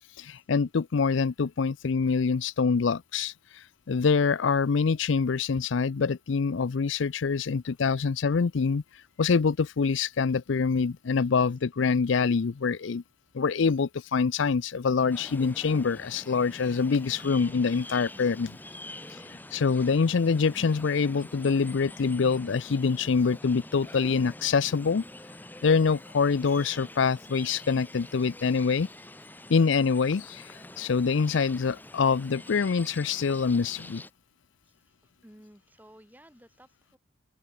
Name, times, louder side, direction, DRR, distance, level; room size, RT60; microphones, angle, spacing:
voice 1, 0.2-8.8 9.2-13.0 13.3-18.5 19.1-25.0 25.6-28.9 29.5-34.0, left 5 dB, 70° left, 0.5 m, -25 dB
sound 1, 15.1-34.1, left 1 dB, 10° left, 4.0 m, -46 dB
voice 2, 35.2-37.0, equal, 10° right, 5.3 m, -55 dB
open air
head